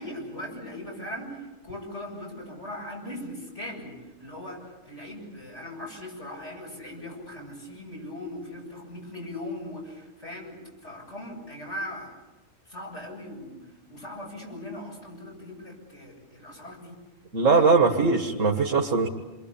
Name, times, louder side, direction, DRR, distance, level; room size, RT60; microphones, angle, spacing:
voice 1, 0.0-12.2 12.7-16.9 17.5-17.8, left 1 dB, 65° left, -1 dB, 8.4 m, -39 dB
voice 2, 17.3-19.1, right 4 dB, 85° right, 2 dB, 2.1 m, -20 dB
28.5 x 23.0 x 8.7 m, 1.1 s
omnidirectional pair, 1.3 m